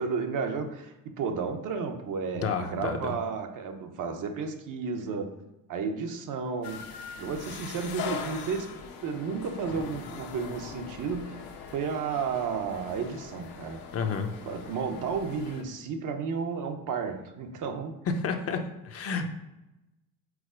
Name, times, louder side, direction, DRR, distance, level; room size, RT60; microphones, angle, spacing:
voice 1, 0.0-5.4 5.7-6.9 7.2-8.7 9.0-13.8 14.5-18.0, right 5 dB, 60° right, 6 dB, 0.8 m, -32 dB
voice 2, 2.3-3.1 13.9-14.3 18.2-19.3, left 5 dB, 40° left, 5 dB, 0.6 m, -30 dB
sound 1, 6.6-15.6, left 6 dB, 75° left, 0.9 m, -41 dB
4.9 x 4.0 x 5.0 m, 0.96 s
cardioid pair, 130°, 36 cm